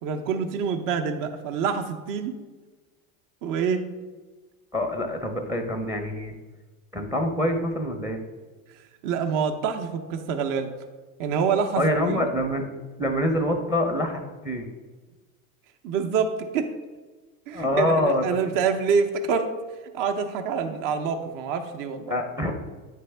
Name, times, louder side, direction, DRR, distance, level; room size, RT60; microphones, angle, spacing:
voice 1, 0.0-2.3 3.4-3.8 9.0-10.7 11.2-12.3 15.8-16.7 17.5-19.5 19.9-22.2, right 6 dB, 50° right, 6 dB, 0.7 m, -26 dB
voice 2, 4.7-6.3 6.9-8.2 11.8-12.6 13.0-14.7 17.5-18.5 22.1-22.5, left 1 dB, 5° right, 5 dB, 0.5 m, -25 dB
9.2 x 3.4 x 3.3 m, 1.3 s
supercardioid pair, 105°, 42 cm